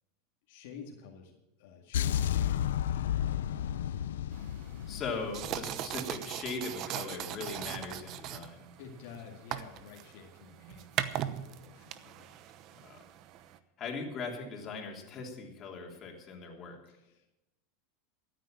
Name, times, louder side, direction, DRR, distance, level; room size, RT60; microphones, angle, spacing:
voice 1, 0.5-3.6 8.8-12.4 16.9-17.3, left 6 dB, 70° left, 0 dB, 2.1 m, -51 dB
sound 1, 1.9-6.0, left 10 dB, 90° left, 0.6 m, -32 dB
sound 2, 4.3-13.6, right 11 dB, 45° right, 0.9 m, -40 dB
voice 2, 4.9-8.7 12.8-13.0 13.8-16.8, left 4 dB, 35° left, 0 dB, 3.4 m, -39 dB
14.5 x 9.3 x 7.5 m, 0.94 s
supercardioid pair, 125°, 0 cm